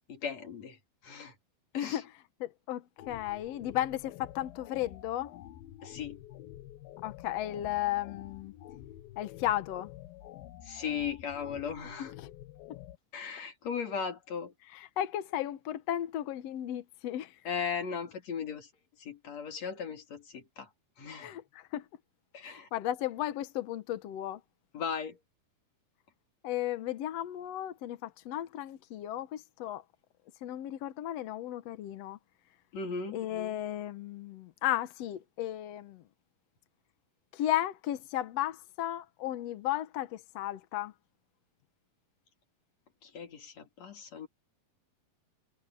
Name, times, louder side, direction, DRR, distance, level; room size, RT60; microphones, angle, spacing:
voice 1, 0.1-0.8 1.0-1.3 1.7-2.0 5.8-6.2 10.6-12.1 13.1-14.5 17.5-18.7 19.0-20.7 21.0-21.3 22.3-22.7 24.7-25.2 32.7-33.2 43.0-44.3, left 6 dB, 50° left, 3.7 m, -37 dB
voice 2, 1.7-5.3 7.0-8.5 9.2-9.9 12.0-12.3 12.7-12.8 14.7-17.4 21.2-21.9 22.4-24.4 26.4-29.8 30.4-32.2 33.1-36.1 37.3-40.9, left 13 dB, 70° left, 1.5 m, -35 dB
sound 1, 3.0-13.0, left 13 dB, 90° left, 2.9 m, -49 dB
omnidirectional pair, 4.2 m